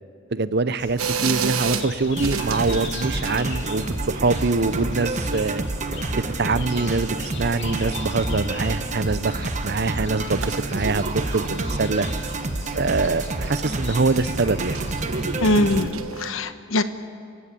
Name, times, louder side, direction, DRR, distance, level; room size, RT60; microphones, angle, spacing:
voice 1, 0.3-5.6 6.1-12.1 12.7-14.8, right 3 dB, 50° right, 15 dB, 0.6 m, -24 dB
sound 1, 0.8-15.6, left 3 dB, 55° left, 2.5 m, -39 dB
sound 2, 1.0-16.3, right 6 dB, 90° right, 1.2 m, -34 dB
sound 3, 2.2-15.9, right 2 dB, 35° right, 1.1 m, -28 dB
voice 2, 15.4-16.8, left 1 dB, 70° left, 10 dB, 1.1 m, -22 dB
29.0 x 16.0 x 8.9 m, 2.3 s
head